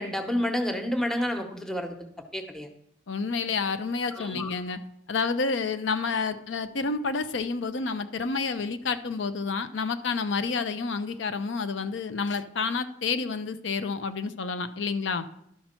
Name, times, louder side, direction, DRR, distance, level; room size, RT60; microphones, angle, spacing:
voice 1, 0.0-2.0 2.3-2.7 4.1-4.5, left 1 dB, 5° left, 5 dB, 0.9 m, -29 dB
voice 2, 3.1-4.8 5.1-15.3, left 4 dB, 85° left, 10 dB, 0.6 m, -29 dB
11.5 x 5.5 x 4.4 m, 0.73 s
head